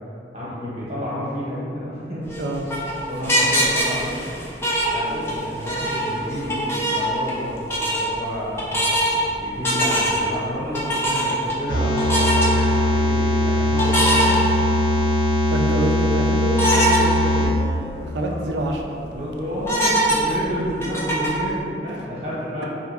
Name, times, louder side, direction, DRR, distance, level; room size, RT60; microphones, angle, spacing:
voice 1, 0.3-2.2 3.1-4.2 4.9-14.4 18.2-18.3 19.2-22.7, equal, 35° right, -8 dB, 1.0 m, -30 dB
sound 1, 2.2-5.4 5.7-7.4 7.7-8.0 8.6-9.2 9.6-10.3 10.7-11.5 12.0-12.5 13.8-15.0 15.4-15.5 16.6-17.0 17.5-17.6 17.9-18.0 18.5-18.8 19.6-21.5, equal, 15° left, 0.4 m, -22 dB
voice 2, 2.4-2.7 11.1-11.4 15.5-19.3 21.9-22.1, right 1 dB, 70° right, 2 dB, 0.4 m, -27 dB
sound 2, 11.7-17.5, left 1 dB, 75° left, 0.8 m, -20 dB
3.3 x 2.2 x 3.3 m, 2.4 s
head